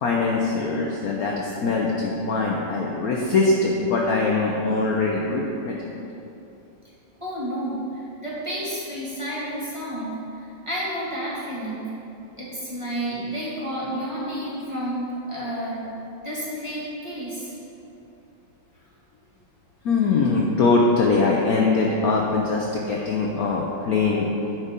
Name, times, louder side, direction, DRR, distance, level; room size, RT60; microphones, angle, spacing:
voice 1, 0.0-5.9 19.8-24.3, left 3 dB, 65° left, -1 dB, 1.0 m, -22 dB
voice 2, 7.2-11.9 12.4-15.8 16.2-17.6, right 1 dB, 15° right, -8 dB, 1.8 m, -31 dB
9.8 x 4.9 x 5.2 m, 2.8 s
omnidirectional pair, 2.1 m